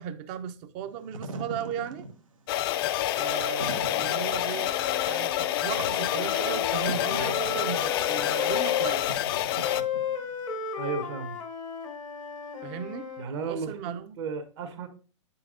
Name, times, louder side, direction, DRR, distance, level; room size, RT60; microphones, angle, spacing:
voice 1, 0.0-2.0 3.2-4.7 5.0-9.2 12.6-13.1 13.5-14.2, right 8 dB, 40° right, 0.6 m, -36 dB
Wind / Fire, 0.9-10.4, right 2 dB, 90° right, 0.9 m, -42 dB
sound 1, 2.5-9.8, left 13 dB, 45° left, 0.4 m, -28 dB
Wind instrument woodwind instrument, 4.5-8.9 9.6-13.3, left 7 dB, 80° left, 1.0 m, -34 dB
voice 2, 10.8-11.4 13.2-14.9, right 5 dB, 60° right, 1.2 m, -34 dB
7.7 x 5.7 x 2.5 m
hypercardioid pair, 110°, 17 cm